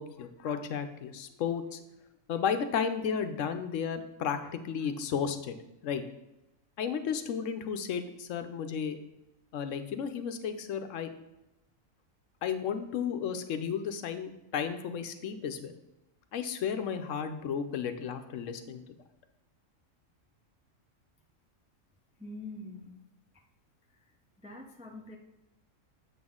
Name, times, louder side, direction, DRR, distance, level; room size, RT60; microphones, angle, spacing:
voice 1, 0.0-1.8 2.3-5.6 5.8-6.0 6.8-9.0 9.5-11.1 12.4-15.7 16.3-18.8, left 7 dB, 75° left, 8 dB, 1.0 m, -33 dB
voice 2, 22.2-23.0 24.0-24.1 24.4-25.2, left 2 dB, 10° right, 2 dB, 0.4 m, -44 dB
7.6 x 6.0 x 3.7 m, 0.93 s
omnidirectional pair, 1.4 m